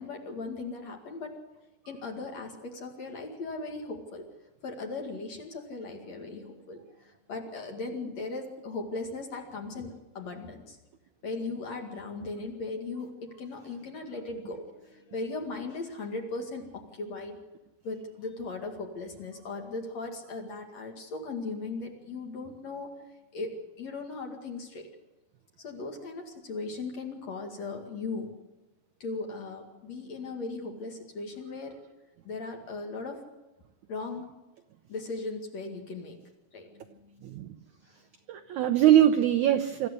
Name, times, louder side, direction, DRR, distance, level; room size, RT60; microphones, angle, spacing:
voice 1, 0.0-1.4 1.9-4.2 4.6-10.8 11.2-17.4 17.8-22.9 23.3-24.9 25.6-28.3 29.0-31.8 32.2-33.2 33.9-34.3 34.9-36.2 36.5-37.3, left 3 dB, 50° left, 2 dB, 3.1 m, -38 dB
voice 2, 37.2-37.5 38.3-39.9, right 11 dB, 80° right, 9 dB, 1.7 m, -22 dB
24.5 x 14.0 x 8.1 m, 1.1 s
omnidirectional pair, 4.5 m